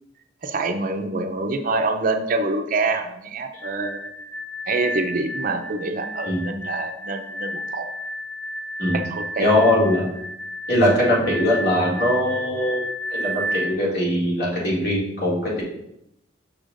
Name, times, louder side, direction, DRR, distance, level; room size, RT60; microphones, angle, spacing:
voice 1, 0.4-4.1 4.7-7.9 8.9-9.6, right 3 dB, 50° right, 6 dB, 0.5 m, -26 dB
sound 1, 3.5-13.7, equal, 25° left, 2.2 m, -32 dB
voice 2, 9.4-10.1 10.7-12.8 13.1-15.6, left 1 dB, 60° left, -5 dB, 2.2 m, -21 dB
6.4 x 5.9 x 2.5 m, 0.82 s
head